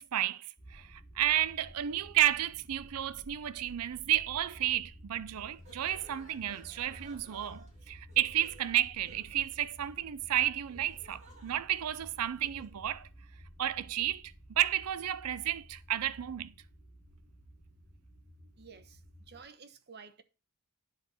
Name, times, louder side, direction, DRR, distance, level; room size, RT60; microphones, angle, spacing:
voice 1, 0.0-13.1 13.6-14.2 14.5-16.5, right 12 dB, 85° right, 0.5 m, -32 dB
sound 1, 0.6-19.4, equal, ahead, 3.2 m, -53 dB
sound 2, 5.3-12.8, right 2 dB, 30° right, 3.2 m, -59 dB
voice 2, 18.6-19.0 19.3-20.2, right 5 dB, 50° right, 1.0 m, -52 dB
10.5 x 4.1 x 7.0 m
head